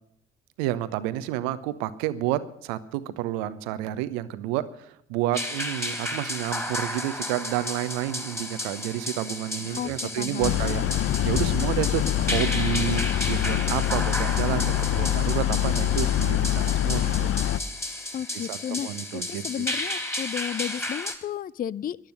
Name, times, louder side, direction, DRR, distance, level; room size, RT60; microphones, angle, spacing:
voice 1, 0.6-10.8 11.2-17.3 18.3-19.7, right 13 dB, 70° right, 14 dB, 1.0 m, -30 dB
sound 1, 5.3-21.1, left 1 dB, 10° left, 3.2 m, -33 dB
sound 2, 9.6-14.7, left 6 dB, 70° left, 1.4 m, -47 dB
voice 2, 9.8-10.6 18.1-22.0, left 10 dB, 30° left, 23 dB, 0.4 m, -33 dB
sound 3, 10.4-17.6, left 12 dB, 45° left, 0.8 m, -25 dB
14.0 x 12.0 x 6.4 m, 0.72 s
figure-of-eight pair, 40°, 31 cm